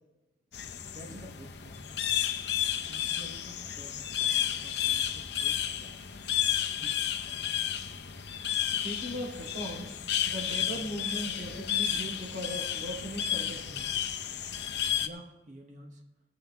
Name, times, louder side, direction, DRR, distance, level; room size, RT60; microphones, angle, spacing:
sound 1, 0.5-15.1, left 10 dB, 65° left, 0.7 m, -32 dB
voice 1, 0.9-1.9 2.9-6.2 6.8-7.3 15.0-16.0, right 1 dB, 40° right, 3 dB, 1.1 m, -51 dB
voice 2, 8.6-10.0 10.2-14.0, equal, 80° right, -5 dB, 3.9 m, -39 dB
17.0 x 8.0 x 3.5 m, 1.0 s
head